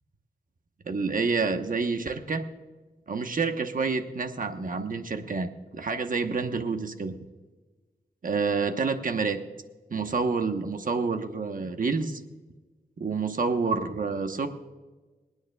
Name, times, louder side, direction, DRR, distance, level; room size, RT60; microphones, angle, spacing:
voice 1, 0.9-2.4 3.1-7.1 8.2-9.4 9.9-12.2 13.0-14.5, right 4 dB, 60° right, 6 dB, 1.0 m, -28 dB
27.0 x 9.4 x 2.3 m, 1.2 s
wide cardioid pair, 95°, 16 cm